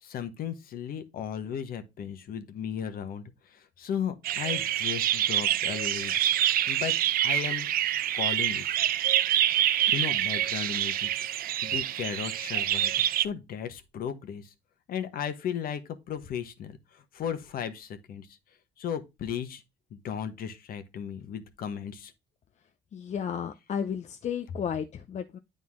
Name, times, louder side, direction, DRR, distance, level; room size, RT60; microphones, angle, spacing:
voice 1, 0.0-6.1 6.7-6.9 7.2-7.7 8.1-8.6 9.9-11.1 11.6-14.5 14.9-15.8 16.1-18.3 18.8-19.6 19.9-22.1, left 8 dB, 60° left, 1.3 m, -35 dB
sound 1, 4.2-13.3, right 12 dB, 60° right, 0.6 m, -26 dB
voice 2, 22.9-25.4, left 8 dB, 45° left, 0.7 m, -33 dB
9.5 x 4.0 x 3.7 m
cardioid pair, 110°, 17 cm